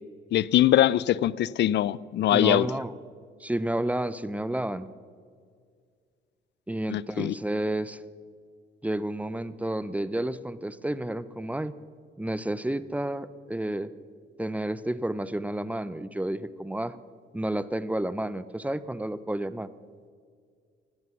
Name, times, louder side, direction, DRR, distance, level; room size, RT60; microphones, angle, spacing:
voice 1, 0.3-2.7 6.9-7.3, left 12 dB, 60° left, 21 dB, 0.4 m, -22 dB
voice 2, 2.3-2.9 3.4-4.9 6.7-8.0 8.8-11.8 12.2-13.9 14.4-16.9 17.3-19.7, right 1 dB, 5° right, 15 dB, 0.5 m, -30 dB
16.5 x 12.0 x 6.0 m, 2.1 s
cardioid pair, 90°, 20 cm